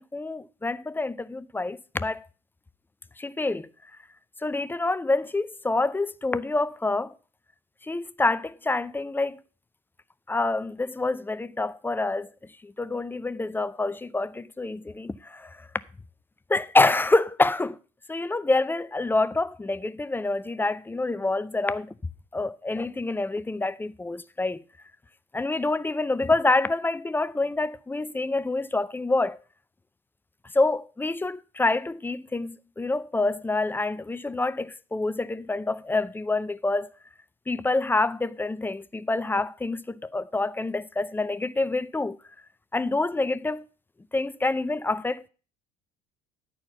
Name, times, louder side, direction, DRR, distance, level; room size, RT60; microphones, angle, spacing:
voice 1, 0.0-2.2 3.2-3.7 4.4-7.1 7.9-9.4 10.3-12.3 12.6-15.6 16.5-17.8 18.1-21.9 22.3-24.6 25.3-29.4 30.5-36.9 37.5-42.2 42.7-43.6 44.1-45.3, left 2 dB, 10° left, 0.5 m, -27 dB
11.5 x 4.4 x 6.8 m
hypercardioid pair, 70°, 19 cm